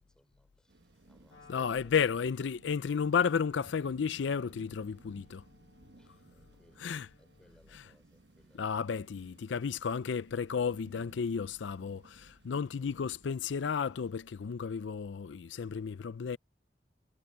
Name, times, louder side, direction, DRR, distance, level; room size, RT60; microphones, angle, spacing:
voice 1, 0.0-2.1 6.0-8.7, equal, 5° left, 4.1 m, -65 dB
sound 1, 0.7-14.1, right 2 dB, 70° right, 1.1 m, -60 dB
Wind instrument woodwind instrument, 1.3-7.6, left 4 dB, 70° left, 1.9 m, -64 dB
voice 2, 1.5-5.4 6.8-7.1 7.7-7.9 8.5-16.4, left 6 dB, 90° left, 0.4 m, -33 dB
head